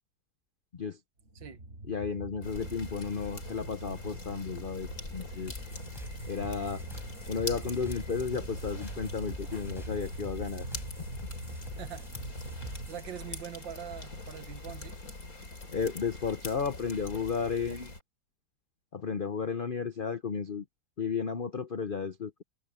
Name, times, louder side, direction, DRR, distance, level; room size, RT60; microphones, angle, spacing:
sound 1, 1.3-12.9, right 1 dB, 35° right, 6.9 m, -43 dB
voice 1, 1.9-5.5 6.3-6.8 7.3-10.7 15.7-17.9 18.9-20.6 21.0-22.4, left 5 dB, 75° left, 0.4 m, -33 dB
sound 2, 2.4-18.0, left 2 dB, 45° left, 4.1 m, -43 dB
sound 3, 5.5-13.1, equal, ahead, 3.9 m, -47 dB
voice 2, 11.8-12.1 12.6-15.0, right 10 dB, 70° right, 2.0 m, -43 dB
omnidirectional pair, 2.1 m